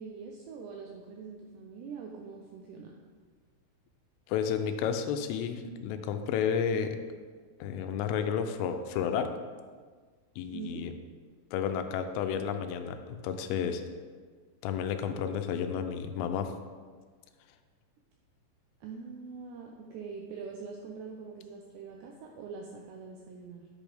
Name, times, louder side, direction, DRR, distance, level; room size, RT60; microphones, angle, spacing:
voice 1, 0.0-3.0 10.5-10.9 18.8-23.7, right 5 dB, 85° right, 1 dB, 2.4 m, -43 dB
voice 2, 4.3-7.0 7.6-9.3 10.4-10.9 11.5-13.8 14.6-16.5, left 7 dB, 90° left, 7 dB, 3.2 m, -31 dB
10.5 x 8.3 x 3.5 m, 1.6 s
omnidirectional pair, 5.7 m